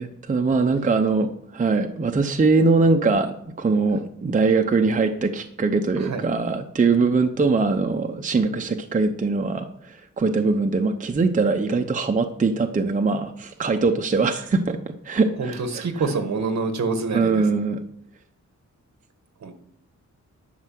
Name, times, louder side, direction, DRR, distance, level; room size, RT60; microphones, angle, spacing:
voice 1, 0.0-14.8 15.0-16.1 17.1-17.8, right 4 dB, 25° right, 5 dB, 0.6 m, -22 dB
voice 2, 6.0-6.3 15.4-17.4 19.4-19.5, right 4 dB, 60° right, 7 dB, 1.4 m, -26 dB
11.0 x 5.4 x 7.5 m, 0.70 s
wide cardioid pair, 175°, 30 cm